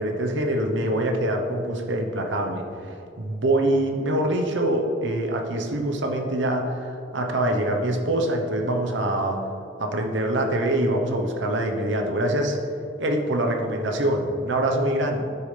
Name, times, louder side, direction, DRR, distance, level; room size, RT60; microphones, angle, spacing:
voice 1, 0.0-2.7 3.2-9.4 9.8-12.6 13.0-15.2, right 1 dB, 70° right, 3 dB, 0.9 m, -24 dB
11.5 x 6.8 x 3.3 m, 2.6 s
head